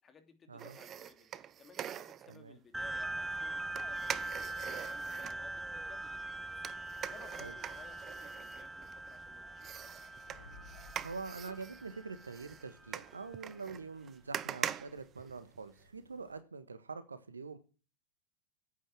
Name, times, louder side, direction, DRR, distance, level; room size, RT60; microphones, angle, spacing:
voice 1, 0.0-4.1 4.6-10.0, left 6 dB, 25° left, 7 dB, 2.8 m, -59 dB
sound 1, 0.6-2.4 3.8-5.4 6.6-9.2 9.6-15.8 16.2-16.3, right 10 dB, 30° right, 0.7 m, -44 dB
sound 2, 2.7-13.6, right 2 dB, 5° right, 1.3 m, -42 dB
sound 3, 7.1-16.4, left 3 dB, 65° left, 3.1 m, -63 dB
voice 2, 11.0-17.6, right 4 dB, 80° right, 12 dB, 1.5 m, -45 dB
9.5 x 8.7 x 9.2 m, 0.35 s
figure-of-eight pair, 95°, 0 cm